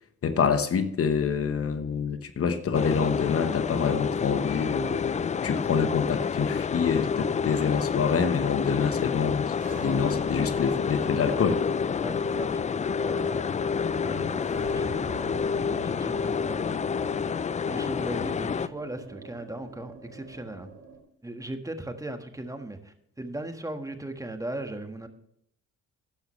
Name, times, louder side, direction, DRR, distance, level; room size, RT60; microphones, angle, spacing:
voice 1, 0.2-9.6 9.8-11.6 14.2-14.3, left 6 dB, 50° left, 1.1 m, -26 dB
sound 1, 2.7-18.7, left 6 dB, 25° left, 0.4 m, -29 dB
sound 2, 9.5-21.0, right 3 dB, 65° right, 4.2 m, -44 dB
voice 2, 12.0-15.0 15.6-17.1 17.7-20.7 21.2-25.1, right 1 dB, 10° right, 1.4 m, -38 dB
12.5 x 10.5 x 3.2 m
cardioid pair, 90°, 30 cm